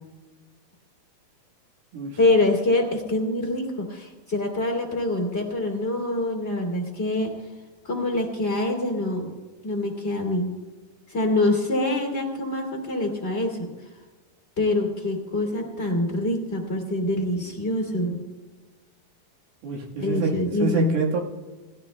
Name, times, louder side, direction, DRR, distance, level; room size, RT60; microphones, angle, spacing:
voice 1, 2.2-7.3 7.8-9.4 9.6-10.5 11.1-13.7 14.6-18.2 20.0-21.0, left 2 dB, 20° left, 1 dB, 2.2 m, -25 dB
voice 2, 19.6-20.3 20.6-21.2, right 4 dB, 85° right, -1 dB, 3.6 m, -26 dB
28.5 x 13.5 x 2.2 m, 1.2 s
omnidirectional pair, 4.4 m